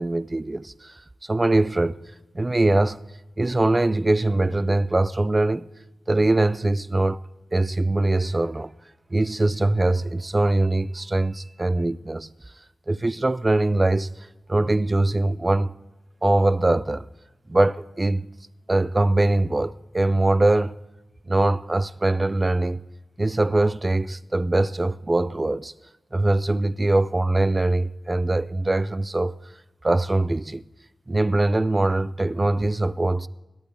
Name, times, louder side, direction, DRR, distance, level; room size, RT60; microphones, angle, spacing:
voice 1, 0.0-2.0 2.3-3.0 3.4-5.7 6.1-7.2 7.5-8.7 9.1-12.3 12.9-14.1 14.5-15.7 16.2-17.1 17.5-18.3 18.7-20.8 21.3-22.8 23.2-25.7 26.1-29.4 29.8-30.6 31.1-33.3, right 2 dB, 20° right, 0.4 m, -22 dB
26.0 x 11.5 x 3.3 m
wide cardioid pair, 95°, 0 cm